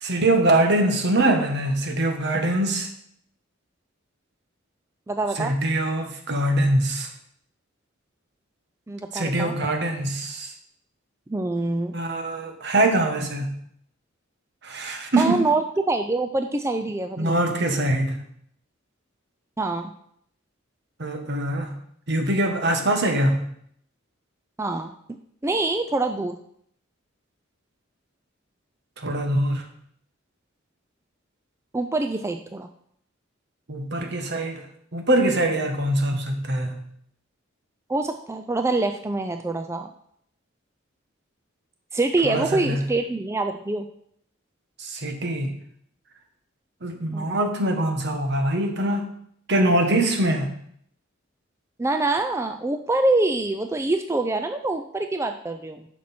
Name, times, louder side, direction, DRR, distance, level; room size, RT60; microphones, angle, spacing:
voice 1, 0.0-2.9 5.4-7.1 9.1-10.5 11.9-13.5 14.6-15.4 17.2-18.2 21.0-21.7 22.1-23.4 29.0-29.6 33.7-34.6 34.9-36.8 42.2-42.8 44.8-45.5 46.8-49.1 49.5-50.5, right 1 dB, 60° right, 4 dB, 1.4 m, -23 dB
voice 2, 5.1-5.5 8.9-9.5 11.3-11.9 15.2-17.4 19.6-19.9 24.6-24.9 25.4-26.4 31.7-32.7 37.9-39.9 41.9-43.9 47.1-47.4 51.8-55.9, right 2 dB, 15° right, 6 dB, 0.4 m, -25 dB
10.0 x 6.2 x 4.3 m, 0.68 s
head